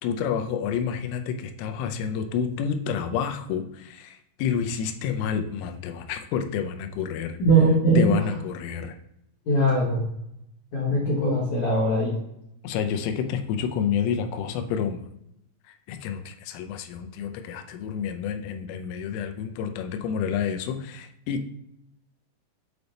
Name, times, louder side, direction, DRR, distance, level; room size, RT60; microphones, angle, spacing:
voice 1, 0.0-7.4 8.0-9.0 12.6-15.0 15.9-21.5, left 7 dB, 85° left, 6 dB, 3.1 m, -29 dB
voice 2, 7.4-8.2 9.5-10.0 10.7-12.1, right 2 dB, 65° left, -5 dB, 1.9 m, -21 dB
8.2 x 3.4 x 4.0 m, 0.80 s
omnidirectional pair, 5.8 m